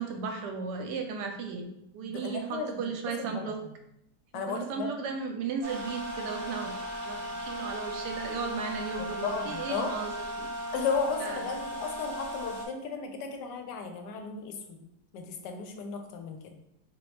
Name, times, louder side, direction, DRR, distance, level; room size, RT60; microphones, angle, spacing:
voice 1, 0.0-3.6 4.3-10.1 10.4-10.5 11.2-11.4, right 5 dB, 80° right, 4 dB, 1.2 m, -35 dB
voice 2, 2.1-2.8 3.2-3.7 4.3-4.9 9.0-10.0 10.7-14.9 15.1-16.6, left 5 dB, 80° left, 5 dB, 1.2 m, -35 dB
sound 1, 5.6-12.7, equal, 45° right, 0.7 m, -37 dB
2.9 x 2.9 x 3.1 m, 0.80 s
omnidirectional pair, 1.8 m